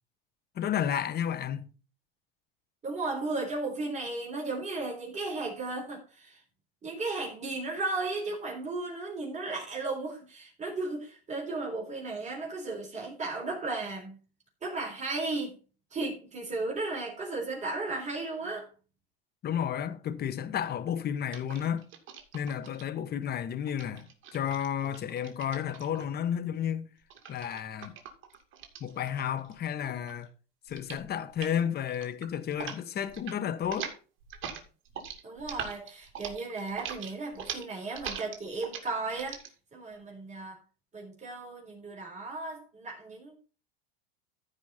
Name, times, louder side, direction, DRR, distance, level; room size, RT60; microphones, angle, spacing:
voice 1, 0.5-1.7 19.4-21.9 22.3-26.9 27.3-28.0 28.8-30.3 30.7-33.9, left 9 dB, 30° left, 1.1 m, -32 dB
voice 2, 2.8-6.4 6.8-14.2 14.6-15.6 15.9-18.7 35.2-39.4 39.7-40.6 40.9-43.4, right 3 dB, 25° right, 3.9 m, -35 dB
sound 1, 21.3-22.8 23.7-26.2 27.1-29.6 29.9-30.3 30.7-31.1 31.3-31.6 31.9-32.8 33.0-33.4 33.6-39.5, right 7 dB, 40° right, 2.4 m, -42 dB
14.5 x 5.1 x 4.2 m
supercardioid pair, 115°, 30 cm